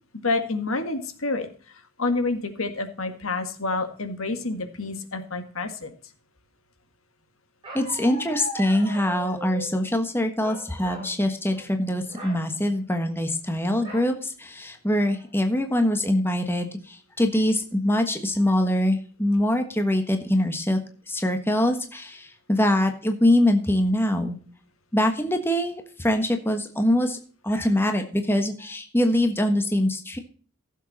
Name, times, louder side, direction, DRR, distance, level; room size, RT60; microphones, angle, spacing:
voice 1, 0.2-1.5 2.0-5.9, left 3 dB, 75° left, 8 dB, 1.8 m, -28 dB
Bark, 7.6-9.7 10.4-11.1 11.5-11.7 12.1-12.4 13.8-14.1 14.7-14.8 15.1-15.5, equal, 25° right, 5.9 m, -39 dB
voice 2, 7.7-20.8 21.1-24.4 24.9-27.2 27.4-30.2, left 1 dB, 10° left, 5 dB, 1.3 m, -23 dB
15.5 x 7.5 x 4.2 m, 0.42 s
head